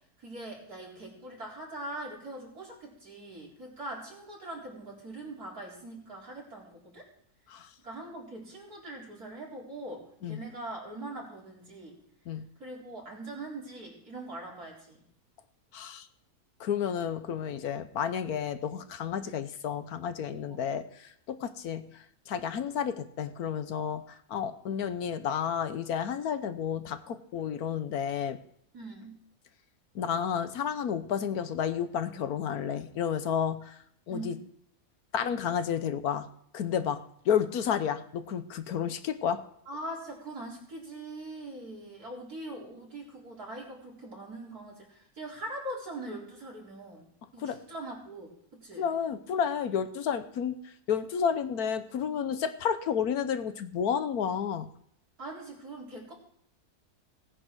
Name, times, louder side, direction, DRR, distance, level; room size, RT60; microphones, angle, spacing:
voice 1, 0.2-7.0 7.8-12.0 12.6-15.0 19.2-19.4 20.5-20.6 28.7-29.2 34.1-34.4 39.7-48.9 55.2-56.1, right 1 dB, 75° right, -3 dB, 4.6 m, -42 dB
voice 2, 15.7-16.1 16.6-21.9 22.3-28.4 29.9-33.8 34.1-34.4 35.1-36.3 36.5-39.4 47.4-47.6 48.8-50.6 50.9-54.7, left 8 dB, 75° left, 11 dB, 1.4 m, -31 dB
18.0 x 9.8 x 4.7 m, 0.67 s
omnidirectional pair, 1.6 m